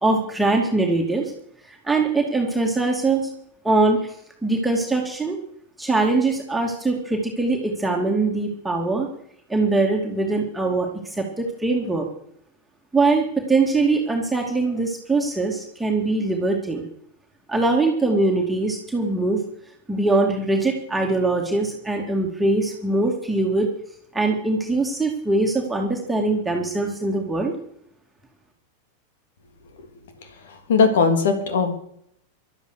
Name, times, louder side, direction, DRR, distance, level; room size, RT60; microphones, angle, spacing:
voice 1, 0.0-1.3 1.6-3.3 3.6-4.1 4.4-5.4 5.8-9.1 9.5-12.1 12.9-16.9 17.5-19.4 19.9-23.7 24.1-27.5, right 3 dB, 5° right, 0 dB, 2.6 m, -22 dB
voice 2, 30.2-31.7, left 5 dB, 60° left, 7 dB, 3.3 m, -20 dB
12.5 x 12.0 x 6.7 m, 0.69 s
figure-of-eight pair, 90°, 0 cm